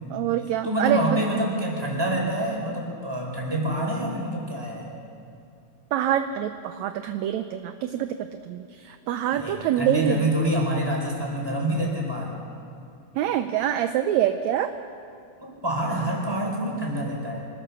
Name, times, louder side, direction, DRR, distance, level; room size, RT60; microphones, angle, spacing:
voice 1, 0.1-1.2 5.9-10.3 13.2-14.7, right 11 dB, 75° right, 9 dB, 1.8 m, -25 dB
voice 2, 0.6-4.9 9.3-12.3 15.4-17.5, right 1 dB, 5° right, -1 dB, 4.2 m, -27 dB
25.0 x 16.5 x 6.9 m, 2.5 s
omnidirectional pair, 3.6 m